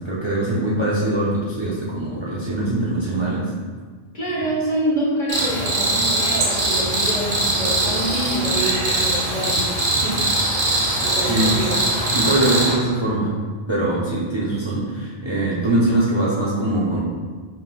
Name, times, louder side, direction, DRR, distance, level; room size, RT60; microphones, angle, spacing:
voice 1, 0.0-3.4 11.3-11.6 12.1-13.3 13.7-17.0, right 1 dB, 30° right, -7 dB, 0.7 m, -22 dB
voice 2, 4.1-9.7 9.9-10.2 11.0-11.8, right 1 dB, 45° left, -6 dB, 1.3 m, -26 dB
Cricket, 5.3-12.7, right 2 dB, 45° right, 1.0 m, -21 dB
5.7 x 3.5 x 2.4 m, 1.5 s
omnidirectional pair, 1.1 m